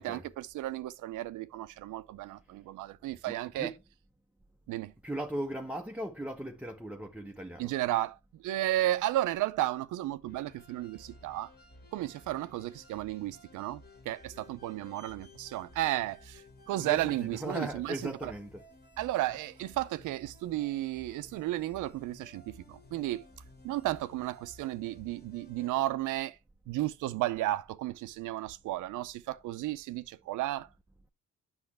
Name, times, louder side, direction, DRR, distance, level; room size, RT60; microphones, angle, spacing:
voice 1, 0.0-3.7 4.7-4.9 7.6-11.5 11.9-18.3 19.0-23.2 23.6-26.4 26.7-30.7, right 15 dB, 85° right, 0.6 m, -33 dB
voice 2, 3.3-3.8 5.0-7.7 16.8-18.6, right 1 dB, 5° right, 0.6 m, -38 dB
sound 1, 10.3-25.7, left 2 dB, 35° left, 1.8 m, -55 dB
8.1 x 6.3 x 3.3 m
cardioid pair, 90°, 30 cm